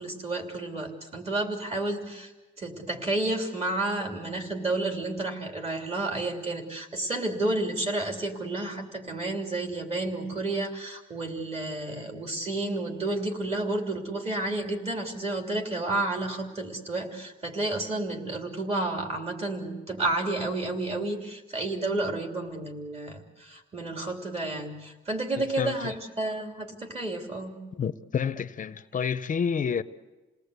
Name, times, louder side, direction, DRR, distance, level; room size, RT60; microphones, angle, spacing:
voice 1, 0.0-2.3 2.6-27.5, right 2 dB, 30° right, 3.2 m, -31 dB
voice 2, 25.4-25.9 27.7-29.8, left 7 dB, 40° left, 0.7 m, -29 dB
28.5 x 18.5 x 8.1 m
wide cardioid pair, 160°, 21 cm